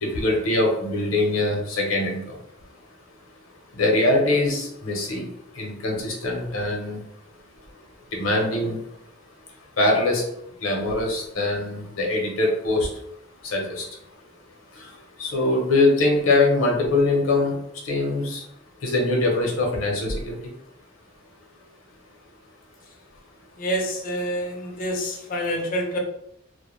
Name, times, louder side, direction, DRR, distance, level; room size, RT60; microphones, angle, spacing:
voice 1, 0.0-2.4 3.7-5.3 5.6-7.0 8.1-8.8 9.8-10.2 10.6-12.9 13.4-13.8 14.7-14.9 15.2-17.6 17.8-18.4 18.8-20.4, left 2 dB, 70° left, 0 dB, 0.7 m, -22 dB
voice 2, 23.6-26.0, equal, 40° left, 2 dB, 0.5 m, -27 dB
2.2 x 2.1 x 3.0 m, 0.75 s
head